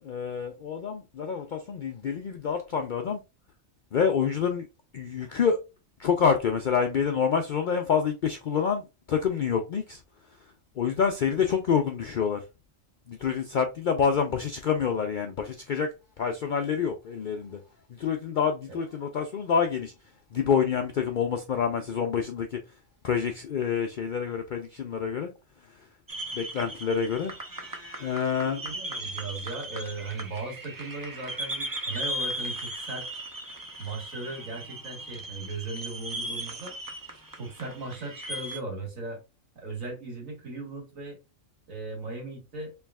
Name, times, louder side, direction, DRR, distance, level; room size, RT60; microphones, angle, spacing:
voice 1, 0.0-3.2 3.9-4.7 4.9-5.6 6.0-12.5 13.1-17.6 17.9-26.0 26.3-28.6, left 6 dB, 65° left, 0.4 m, -28 dB
sound 1, 26.1-38.6, right 1 dB, 25° right, 0.4 m, -37 dB
voice 2, 28.6-33.1 33.8-36.7 37.4-39.2 39.6-41.2 41.7-42.7, right 3 dB, 80° right, 2.1 m, -37 dB
4.6 x 3.3 x 2.3 m
omnidirectional pair, 1.4 m